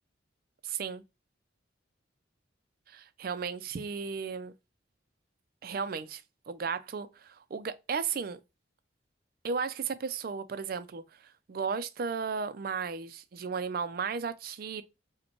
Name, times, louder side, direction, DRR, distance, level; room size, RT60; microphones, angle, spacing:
voice 1, 0.6-1.0 2.9-4.5 5.6-8.4 9.4-14.8, right 5 dB, 50° right, 0.4 m, -35 dB
5.1 x 2.2 x 2.9 m
head